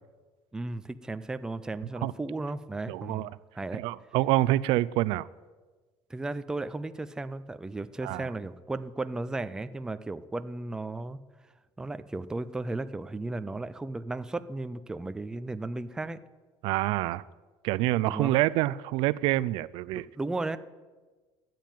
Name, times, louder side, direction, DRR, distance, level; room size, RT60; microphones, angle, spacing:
voice 1, 0.5-3.3 3.5-3.8 6.1-11.2 11.8-16.2 18.1-18.3 19.9-20.6, right 2 dB, 5° right, 0.5 m, -35 dB
voice 2, 2.9-3.3 3.7-5.3 8.0-8.3 16.6-17.3 17.6-20.0, right 17 dB, 65° right, 0.4 m, -27 dB
13.5 x 9.2 x 9.2 m
cardioid pair, 155°, 9 cm